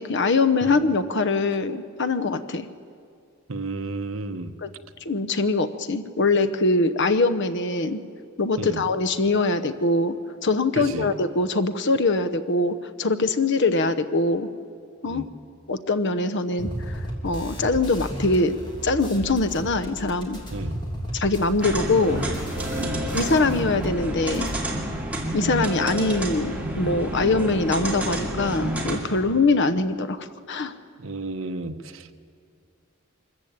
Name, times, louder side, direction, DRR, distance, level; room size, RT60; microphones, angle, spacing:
voice 1, 0.0-2.7 4.6-4.7 5.0-8.0 8.4-10.2 10.4-14.5 15.0-15.2 15.7-20.4 21.1-22.2 23.1-24.5 25.3-30.7, left 3 dB, 55° left, 11 dB, 0.9 m, -23 dB
voice 2, 3.5-4.5 8.6-8.8 10.7-11.1 15.1-15.3 20.5-20.8 22.7-23.0 31.0-32.1, right 2 dB, 70° right, 8 dB, 1.0 m, -32 dB
sound 1, 16.6-23.9 24.1-24.6, equal, 20° left, 2.9 m, -34 dB
sound 2, 21.6-29.0, right 1 dB, 5° right, 2.5 m, -29 dB
24.0 x 14.5 x 8.7 m, 2.4 s
head